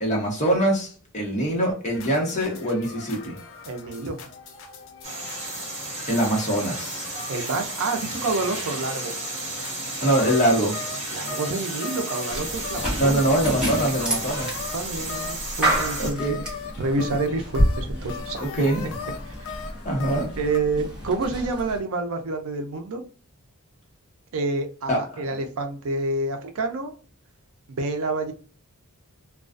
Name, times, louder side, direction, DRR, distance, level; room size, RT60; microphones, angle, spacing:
voice 1, 0.0-3.3 6.1-7.1 10.0-10.8 12.9-14.5 16.0-16.4 18.4-18.8 19.8-20.3 24.9-25.0, right 1 dB, 35° left, -1 dB, 0.9 m, -23 dB
sound 1, 1.9-20.6, left 5 dB, 60° left, 0.4 m, -39 dB
voice 2, 3.6-4.2 7.3-9.1 11.1-13.3 14.7-16.2 16.8-18.7 20.4-23.0 24.3-26.9 27.7-28.3, right 3 dB, 65° right, 6 dB, 0.5 m, -28 dB
sound 2, 5.0-16.1, right 2 dB, 30° right, 1.1 m, -33 dB
sound 3, 12.3-21.8, right 1 dB, 5° right, 0.9 m, -29 dB
2.3 x 2.2 x 2.4 m, 0.39 s
head